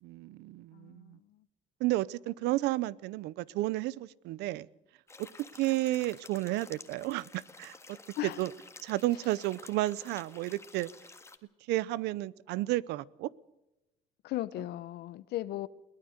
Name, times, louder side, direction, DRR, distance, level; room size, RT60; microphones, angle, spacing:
voice 1, 0.0-1.2 1.8-4.7 5.2-5.3 5.6-8.5 8.8-10.9 11.7-13.3, right 17 dB, 90° right, 0.7 m, -32 dB
voice 2, 0.7-1.1 8.2-8.4 14.2-15.7, left 15 dB, 75° left, 1.0 m, -36 dB
sound 1, 5.1-11.4, left 3 dB, 15° left, 1.7 m, -52 dB
22.0 x 18.5 x 6.6 m
cardioid pair, 110°, 17 cm